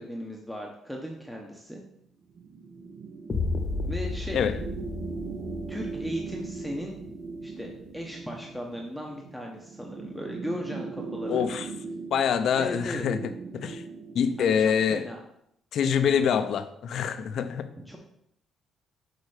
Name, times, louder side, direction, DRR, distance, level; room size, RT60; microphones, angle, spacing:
voice 1, 0.0-1.8 3.9-4.4 5.0-5.3 5.7-7.0 7.4-11.6 12.5-13.1 14.4-15.2 17.9-18.0, equal, ahead, 0 dB, 0.8 m, -37 dB
sound 1, 2.3-14.7, right 4 dB, 55° right, 0.7 m, -39 dB
sound 2, 3.3-7.3, left 3 dB, 25° left, 0.7 m, -33 dB
voice 2, 11.3-11.7 12.1-13.2 13.5-13.8 14.1-15.0 15.7-17.7, left 7 dB, 60° left, 10 dB, 0.6 m, -25 dB
6.6 x 4.2 x 4.9 m, 0.72 s
cardioid pair, 135°, 0 cm